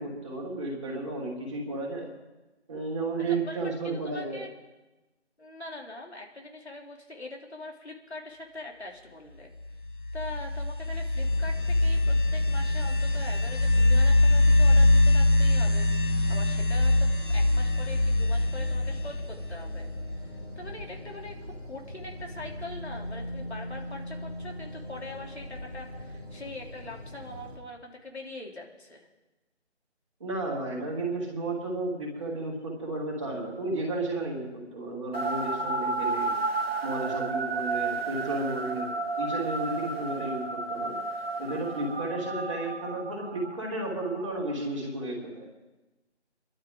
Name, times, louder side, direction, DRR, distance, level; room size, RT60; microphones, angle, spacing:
voice 1, 0.0-2.1 2.7-4.4 30.2-36.3 36.8-41.0 41.4-45.5, right 2 dB, 25° right, -3 dB, 3.3 m, -33 dB
voice 2, 3.8-4.5 5.4-9.5 10.1-19.9 20.6-21.4 21.6-29.1, left 2 dB, 65° left, 0 dB, 3.3 m, -42 dB
sound 1, 9.8-20.3, left 2 dB, 45° left, 1.1 m, -23 dB
sound 2, 11.1-27.6, equal, 20° left, 2.2 m, -42 dB
sound 3, 35.1-44.6, right 3 dB, 60° right, 1.5 m, -32 dB
25.0 x 11.5 x 3.8 m, 1.1 s
figure-of-eight pair, 165°, 35 cm